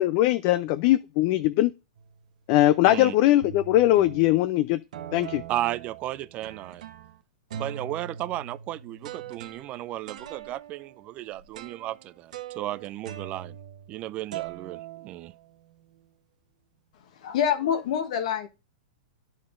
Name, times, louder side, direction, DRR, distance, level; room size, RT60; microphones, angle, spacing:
voice 1, 0.0-1.7 2.5-4.8 5.1-5.4, left 15 dB, 45° left, 0.4 m, -21 dB
sound 1, 2.0-2.3 2.9-3.0 3.4-4.5 4.9-7.2 7.5-14.0 14.3-15.7, right 9 dB, 70° right, 0.9 m, -41 dB
voice 2, 2.8-3.1 5.5-6.8 7.5-13.6 13.9-15.3, right 14 dB, 35° right, 0.3 m, -34 dB
voice 3, 17.2-18.5, left 8 dB, 65° left, 1.2 m, -26 dB
10.5 x 5.8 x 2.5 m
hypercardioid pair, 125°, 4 cm